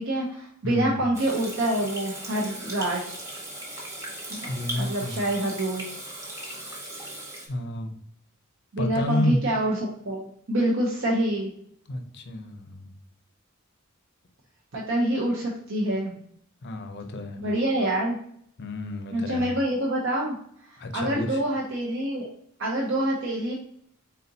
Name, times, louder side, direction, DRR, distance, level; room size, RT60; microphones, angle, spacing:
voice 1, 0.0-3.2 4.3-4.4 4.8-6.0 8.7-9.8 10.1-11.5 14.7-16.1 17.4-18.2 19.1-20.3 20.7-22.3 22.6-23.5, right 1 dB, 60° right, -3 dB, 0.7 m, -26 dB
voice 2, 0.6-1.0 4.5-5.2 7.5-7.9 8.8-9.4 11.9-12.9 16.6-17.4 18.6-19.5 20.8-21.4, left 1 dB, 55° left, 7 dB, 0.6 m, -30 dB
Water tap faucet / Sink (filling or washing), 1.1-7.5, right 1 dB, 15° right, 1.0 m, -38 dB
4.1 x 3.7 x 2.7 m, 0.64 s
head